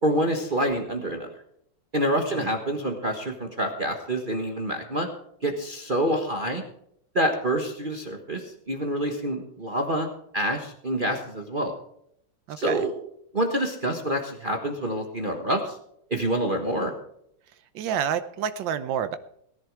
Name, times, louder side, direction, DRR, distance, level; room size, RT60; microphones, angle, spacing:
voice 1, 0.0-1.3 1.9-5.1 5.4-6.6 7.1-10.1 10.3-11.7 12.6-12.9 13.3-15.8 16.1-16.9, right 1 dB, 30° right, 3 dB, 1.4 m, -27 dB
voice 2, 12.5-12.8 17.7-19.2, right 8 dB, 90° right, 10 dB, 1.5 m, -29 dB
18.5 x 10.5 x 4.8 m, 0.70 s
omnidirectional pair, 2.0 m